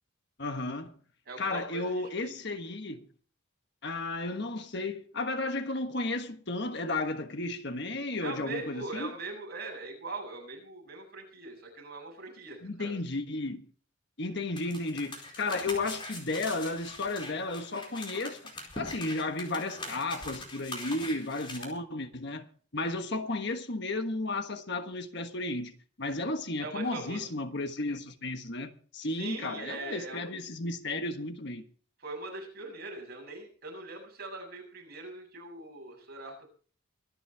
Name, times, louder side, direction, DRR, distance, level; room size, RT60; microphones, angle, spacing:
voice 1, 0.4-0.9 1.4-3.0 3.8-9.1 12.6-13.7 14.2-31.6, left 2 dB, 55° left, 1.4 m, -33 dB
voice 2, 1.3-2.4 8.2-12.9 26.6-27.2 29.2-30.3 32.0-36.5, right 3 dB, 45° right, 7.4 m, -41 dB
sound 1, 14.6-21.6, left 2 dB, 25° left, 4.5 m, -42 dB
24.5 x 10.5 x 3.4 m
head